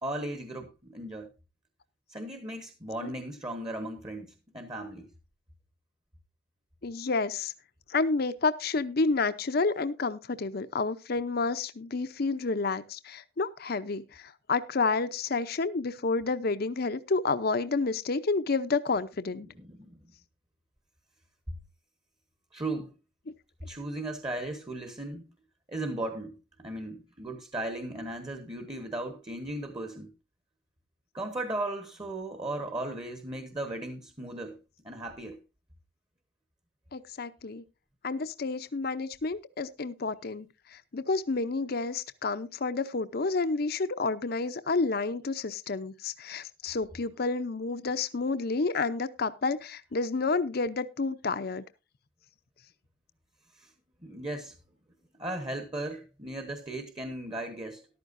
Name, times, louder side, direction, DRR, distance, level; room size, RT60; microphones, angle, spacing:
voice 1, 0.0-1.3 2.1-5.1 19.4-20.0 22.5-22.9 23.7-25.3 25.7-30.1 31.1-34.6 34.8-35.4 53.6-53.7 54.0-54.6 55.2-57.9, right 1 dB, 25° right, 1.2 m, -36 dB
voice 2, 6.8-7.5 7.9-19.5 36.9-37.6 38.0-40.5 40.9-51.6, left 3 dB, 55° left, 0.7 m, -30 dB
14.0 x 11.5 x 2.6 m
head